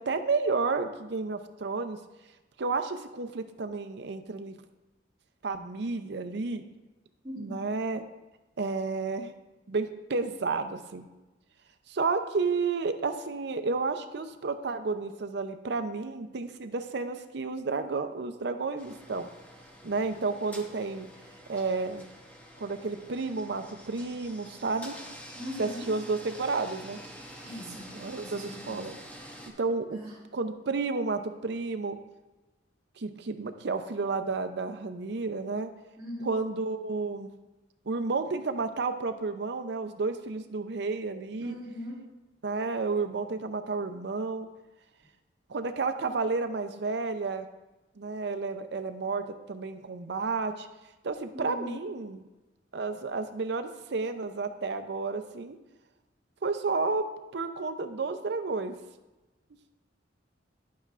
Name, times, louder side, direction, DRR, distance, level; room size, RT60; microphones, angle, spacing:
voice 1, 0.0-2.0 2.6-4.6 5.4-6.6 7.4-8.1 8.6-9.3 9.7-11.1 11.9-19.3 19.8-21.1 21.5-22.1 22.6-25.0 25.6-27.0 27.9-28.9 29.6-30.0 30.3-32.0 33.0-35.7 36.2-37.3 37.9-41.6 42.4-44.5 45.5-47.5 48.0-50.7 51.0-52.2 52.7-55.6 56.4-58.7, right 4 dB, 65° right, 8 dB, 0.6 m, -31 dB
voice 2, 7.2-7.6 25.3-25.9 27.4-27.9 28.2-28.8 29.9-30.1 36.0-36.3 41.4-42.0 51.3-51.8, equal, 20° right, -9 dB, 2.7 m, -40 dB
sound 1, 18.8-29.5, equal, 10° left, 1.0 m, -47 dB
10.5 x 8.6 x 2.5 m, 1.1 s
head